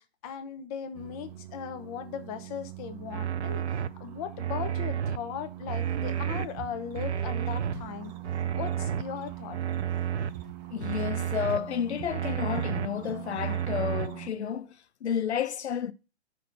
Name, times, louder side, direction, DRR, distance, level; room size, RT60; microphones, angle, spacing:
voice 1, 0.0-3.7 4.0-8.1 8.6-9.6, left 8 dB, 35° left, 1.1 m, -38 dB
sound 1, 0.9-14.3, right 14 dB, 40° right, 0.9 m, -43 dB
sound 2, 3.1-3.9 4.4-5.2 5.7-6.5 7.0-7.7 8.2-9.0 9.5-10.3 10.8-11.6 12.1-12.9 13.4-14.1, right 9 dB, 80° right, 0.6 m, -30 dB
Walk footsteps, 6.0-6.2 6.6-7.9 8.2-9.5 9.8-13.3 13.6-13.9 14.3-14.4, right 13 dB, 20° right, 0.4 m, -46 dB
voice 2, 10.7-15.9, left 8 dB, 75° left, 0.7 m, -31 dB
5.8 x 4.2 x 6.1 m
hypercardioid pair, 125°, 34 cm